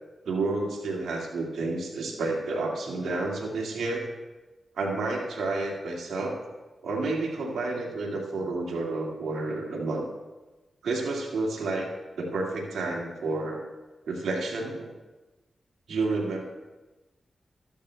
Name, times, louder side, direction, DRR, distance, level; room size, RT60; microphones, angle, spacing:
voice 1, 0.2-4.0 4.8-6.4 6.8-10.0 10.8-11.9 12.2-13.6 14.1-14.9 15.9-16.4, right 3 dB, 85° right, 0 dB, 2.0 m, -30 dB
14.0 x 12.0 x 2.3 m, 1.1 s
cardioid pair, 50°, 0 cm